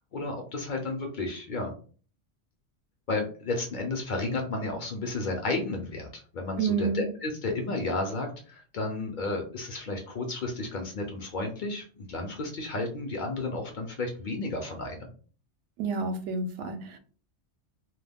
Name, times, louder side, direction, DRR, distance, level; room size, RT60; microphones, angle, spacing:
voice 1, 0.1-1.7 3.1-15.1, left 2 dB, 55° left, 3 dB, 0.6 m, -32 dB
voice 2, 6.6-7.0 15.8-17.0, right 5 dB, 80° right, 7 dB, 0.9 m, -29 dB
2.2 x 2.2 x 3.4 m, 0.41 s
omnidirectional pair, 1.2 m